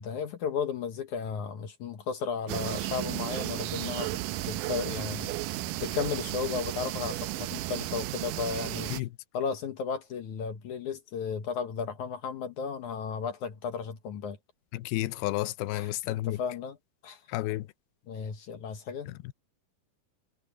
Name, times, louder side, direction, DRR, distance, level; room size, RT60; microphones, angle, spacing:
voice 1, 0.0-5.3 5.8-9.0 9.3-14.4 15.7-16.8 17.0-17.2 18.1-19.1, left 6 dB, 65° left, 2.3 m, -34 dB
sound 1, 2.5-9.0, right 16 dB, 85° right, 1.9 m, -34 dB
voice 2, 14.7-16.4 17.3-17.7, left 17 dB, 85° left, 2.6 m, -31 dB
omnidirectional pair, 4.4 m